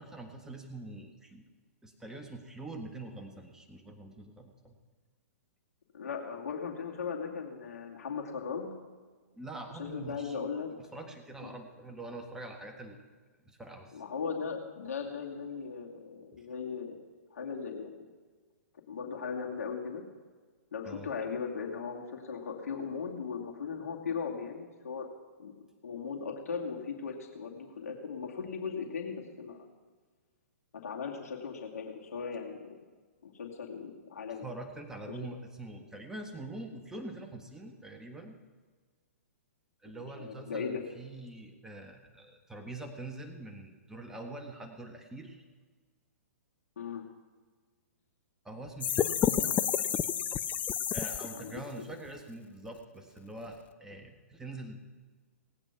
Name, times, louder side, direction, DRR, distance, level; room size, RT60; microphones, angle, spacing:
voice 1, 0.0-1.4 1.8-4.7 9.4-10.4 10.7-13.0 13.4-14.0 16.3-16.5 20.8-21.1 34.4-38.4 39.8-45.4 48.4-49.7 50.9-54.8, right 2 dB, 5° right, 3 dB, 1.5 m, -44 dB
voice 2, 5.9-8.7 9.8-10.7 11.4-11.5 13.9-17.0 17.3-18.1 18.9-20.0 20.7-25.1 25.4-25.5 25.8-29.7 30.7-32.8 33.2-34.5 35.1-35.2 39.9-40.8 46.8-47.0 49.4-49.9 51.3-51.9, left 6 dB, 70° left, 1 dB, 2.3 m, -38 dB
sound 1, 48.8-51.6, left 9 dB, 20° left, 0.4 m, -30 dB
18.5 x 8.9 x 5.9 m, 1.5 s
hypercardioid pair, 130°, 8 cm